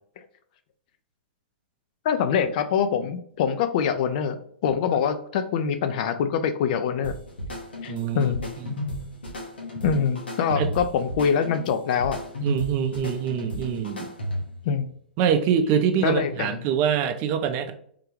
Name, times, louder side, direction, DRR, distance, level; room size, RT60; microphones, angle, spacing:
voice 1, 2.0-4.4 4.6-7.1 7.8-8.4 9.8-12.2 14.7-14.9 16.0-16.6, left 7 dB, 50° left, 9 dB, 0.4 m, -24 dB
sound 1, 7.0-14.6, left 1 dB, 80° left, 1.2 m, -34 dB
voice 2, 7.9-8.3 8.7-8.8 10.5-10.7 12.4-14.1 15.2-17.7, right 7 dB, 40° right, 8 dB, 0.5 m, -24 dB
3.6 x 2.3 x 3.1 m, 0.63 s
hypercardioid pair, 115°, 6 cm